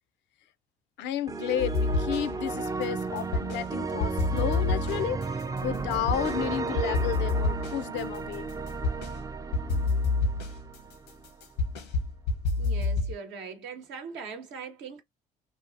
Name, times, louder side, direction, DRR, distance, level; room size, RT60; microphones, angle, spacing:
voice 1, 1.0-5.2 5.6-8.5, left 10 dB, 65° left, 0.4 m, -32 dB
sound 1, 1.3-11.3, right 4 dB, 20° right, 0.4 m, -34 dB
sound 2, 1.6-2.5 2.8-3.7 4.0-6.4 6.8-9.2 9.5-13.1, left 3 dB, 85° left, 0.9 m, -28 dB
voice 2, 12.6-15.0, right 5 dB, 70° right, 0.9 m, -40 dB
2.8 x 2.4 x 2.5 m
hypercardioid pair, 55°, 20 cm